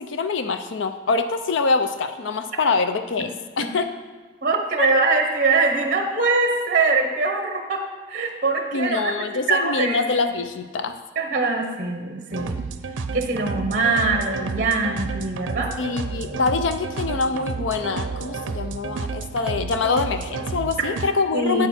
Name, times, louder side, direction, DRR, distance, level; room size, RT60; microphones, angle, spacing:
voice 1, 0.0-3.9 4.8-4.9 8.7-10.9 15.8-21.7, left 4 dB, 80° left, 9 dB, 0.5 m, -24 dB
voice 2, 4.4-9.1 9.5-10.0 11.2-12.6 13.1-15.7 21.3-21.7, right 3 dB, 45° right, 3 dB, 0.9 m, -22 dB
sound 1, 12.3-21.1, right 4 dB, 90° right, 0.5 m, -31 dB
8.7 x 6.4 x 4.3 m, 1.4 s
head